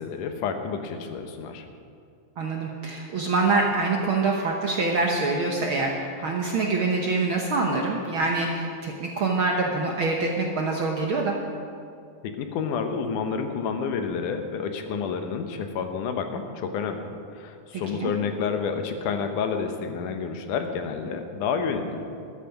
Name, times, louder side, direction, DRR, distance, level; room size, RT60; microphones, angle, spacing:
voice 1, 0.0-1.7 12.2-17.1 17.3-22.1, left 6 dB, 85° left, 6 dB, 2.6 m, -29 dB
voice 2, 2.4-11.3 17.7-18.1, right 3 dB, 60° right, 0 dB, 1.4 m, -25 dB
13.0 x 12.5 x 5.9 m, 2.4 s
omnidirectional pair, 3.5 m